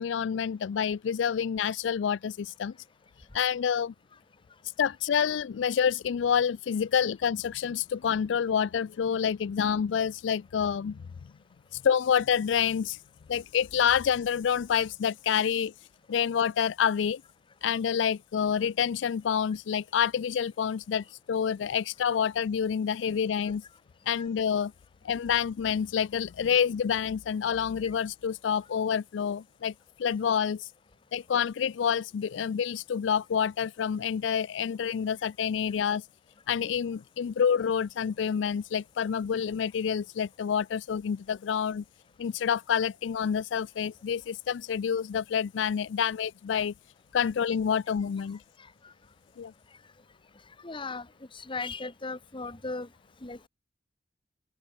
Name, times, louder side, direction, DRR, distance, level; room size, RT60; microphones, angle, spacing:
voice 1, 0.0-2.7 3.3-3.9 4.8-11.0 11.7-13.0 13.3-15.7 16.1-17.2 17.6-23.6 24.1-24.7 25.0-29.7 30.0-30.7 31.1-36.0 36.5-41.8 42.2-46.7 47.1-48.4 49.4-49.5, left 7 dB, 75° left, 0.4 m, -28 dB
voice 2, 50.6-51.1 51.3-52.9 53.2-53.5, left 3 dB, 25° left, 1.3 m, -36 dB
open air
head